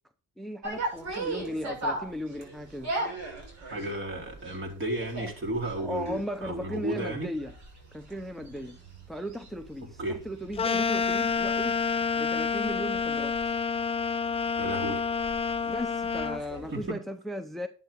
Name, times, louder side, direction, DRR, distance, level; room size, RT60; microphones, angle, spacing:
voice 1, 0.4-2.9 5.8-7.5 7.9-8.8 9.1-11.8 12.2-13.4 15.6-17.7, equal, ahead, 0.8 m, -36 dB
sound 1, 0.6-16.9, right 2 dB, 65° right, 6.5 m, -40 dB
voice 2, 3.7-7.3 10.0-10.2 14.6-15.0 16.7-17.0, right 1 dB, 40° right, 4.3 m, -33 dB
sound 2, 10.6-16.4, left 5 dB, 20° left, 0.4 m, -28 dB
11.5 x 8.1 x 3.8 m
cardioid pair, 90°, 30 cm